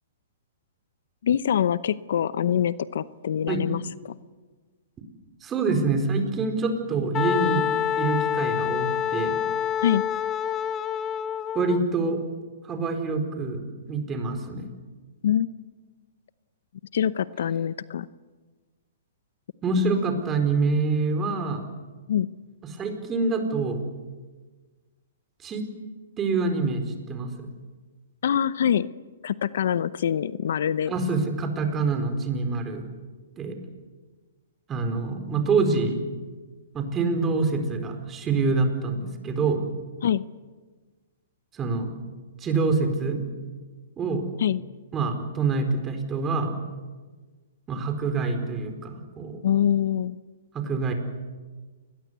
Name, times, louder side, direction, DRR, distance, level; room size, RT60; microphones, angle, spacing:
voice 1, 1.2-4.1 9.8-10.0 15.2-15.5 16.9-18.1 22.1-22.3 28.2-28.9 29.2-30.9 40.0-40.2 44.4-44.6 49.4-50.2, left 9 dB, 65° left, 17 dB, 0.8 m, -24 dB
voice 2, 5.4-7.7 8.0-9.4 11.5-12.2 12.6-13.6 13.9-14.7 19.6-21.6 22.7-23.8 25.4-25.7 26.2-27.5 30.9-32.9 33.4-33.6 34.7-36.0 36.7-39.6 41.5-41.9 42.4-43.2 44.0-44.2 44.9-46.5 47.7-49.4 50.5-50.9, right 3 dB, 20° right, 6 dB, 4.5 m, -26 dB
Wind instrument woodwind instrument, 7.1-11.8, left 9 dB, 25° left, 1.4 m, -27 dB
29.0 x 21.0 x 8.2 m, 1.4 s
hypercardioid pair, 135°, 0 cm